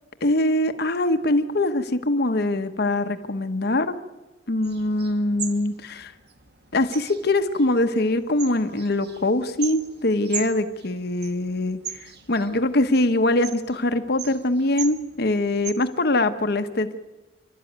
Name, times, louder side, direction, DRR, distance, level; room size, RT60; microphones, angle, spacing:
voice 1, 0.2-3.9 4.5-6.1 6.7-17.0, left 2 dB, 55° left, 9 dB, 1.0 m, -23 dB
sound 1, 4.6-15.7, right 8 dB, 60° right, 1.7 m, -39 dB
30.0 x 12.0 x 9.3 m, 1.2 s
head